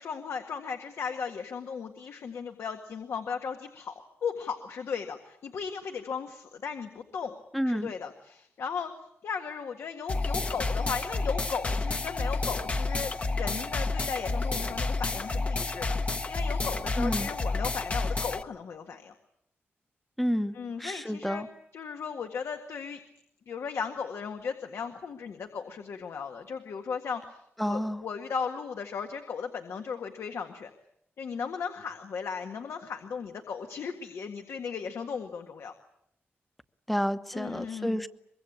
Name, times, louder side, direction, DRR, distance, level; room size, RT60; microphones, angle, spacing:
voice 1, 0.0-3.9 4.2-7.3 7.6-8.9 9.2-16.0 16.3-19.1 20.5-21.4 21.7-23.0 23.5-30.7 31.2-35.7 37.3-38.0, left 6 dB, 75° left, 5 dB, 1.8 m, -36 dB
voice 2, 7.5-7.9 17.0-17.3 20.2-21.5 27.6-28.0 36.9-38.1, equal, ahead, 11 dB, 0.9 m, -30 dB
sound 1, 10.1-18.4, left 3 dB, 30° left, 1.0 m, -30 dB
24.0 x 23.0 x 8.7 m, 0.73 s
wide cardioid pair, 165°, 5 cm